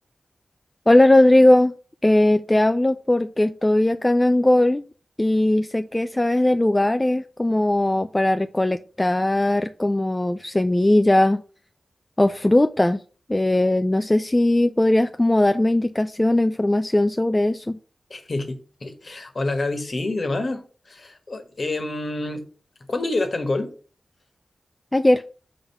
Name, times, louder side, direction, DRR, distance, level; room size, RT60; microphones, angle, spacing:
voice 1, 0.9-1.7 2.0-4.8 5.2-11.4 12.2-13.0 13.3-17.8 24.9-25.2, left 1 dB, 20° left, 0.3 m, -19 dB
voice 2, 18.1-22.4 22.9-23.7, left 2 dB, 50° left, 1.3 m, -27 dB
5.3 x 3.6 x 5.7 m
wide cardioid pair, 70°, 0 cm